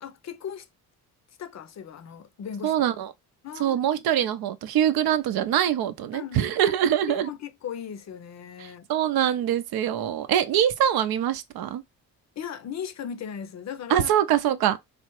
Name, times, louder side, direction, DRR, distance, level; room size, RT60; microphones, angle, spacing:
voice 1, 0.0-0.7 1.4-2.8 3.4-4.3 6.1-6.8 7.1-8.9 12.4-14.1, left 8 dB, 45° left, 0.6 m, -37 dB
voice 2, 2.6-3.1 3.6-7.3 8.6-11.8 13.9-14.8, right 10 dB, 65° right, 0.6 m, -24 dB
3.3 x 2.0 x 3.0 m
supercardioid pair, 60°, 39 cm